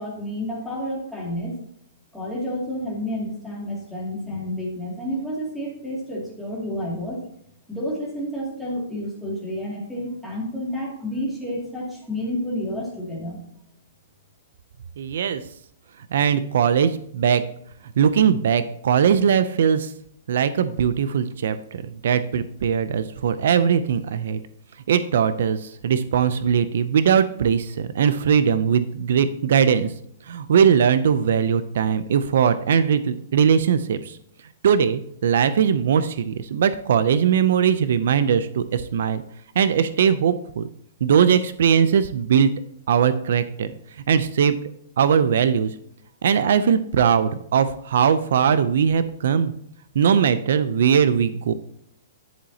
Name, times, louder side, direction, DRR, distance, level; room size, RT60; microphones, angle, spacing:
voice 1, 0.0-1.5 2.1-7.2 7.7-13.4, equal, ahead, -5 dB, 2.4 m, -30 dB
voice 2, 15.0-15.4 16.1-17.4 18.0-19.9 20.3-24.4 24.9-29.9 30.3-34.2 34.6-39.2 39.6-40.7 41.0-42.5 42.9-43.7 44.1-44.6 45.0-45.7 46.2-49.5 50.0-51.5, right 7 dB, 65° right, 13 dB, 0.5 m, -20 dB
10.5 x 7.0 x 2.8 m, 0.68 s
hypercardioid pair, 165°, 0 cm